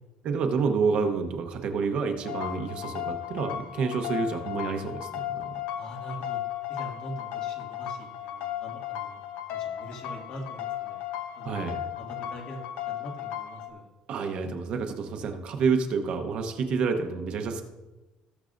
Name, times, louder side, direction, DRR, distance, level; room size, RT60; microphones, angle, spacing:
voice 1, 0.2-5.5 11.4-11.9 14.1-17.6, right 5 dB, 45° right, 5 dB, 0.9 m, -28 dB
sound 1, 2.2-13.7, left 12 dB, 75° left, 0.8 m, -35 dB
voice 2, 5.8-6.4 6.7-9.2 9.5-11.0 11.4-13.9, equal, 50° left, 0 dB, 1.9 m, -43 dB
18.5 x 6.4 x 2.6 m, 1.1 s
cardioid pair, 170°, 2 cm